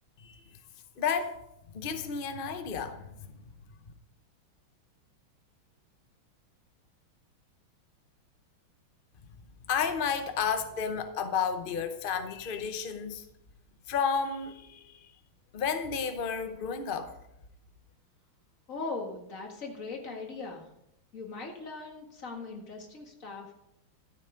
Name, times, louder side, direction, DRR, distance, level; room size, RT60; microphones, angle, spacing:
voice 1, 1.0-1.4 1.7-3.3 9.7-13.3 13.9-15.1 15.5-17.1, left 6 dB, 90° left, 0.4 m, -32 dB
voice 2, 18.7-20.7 21.1-23.5, left 3 dB, 40° left, 2.1 m, -39 dB
13.0 x 8.2 x 5.1 m
omnidirectional pair, 2.3 m